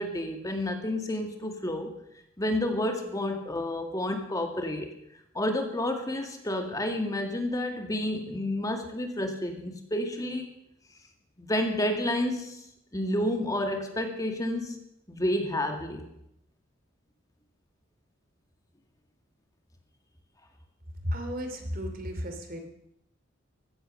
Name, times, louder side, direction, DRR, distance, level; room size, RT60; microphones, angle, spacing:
voice 1, 0.0-1.9 2.4-4.9 5.3-10.5 11.4-12.7 12.9-14.8 15.1-16.1, left 1 dB, 15° left, 4 dB, 1.9 m, -30 dB
voice 2, 21.0-22.7, equal, 45° right, 6 dB, 2.7 m, -33 dB
15.5 x 14.5 x 6.5 m, 0.78 s
head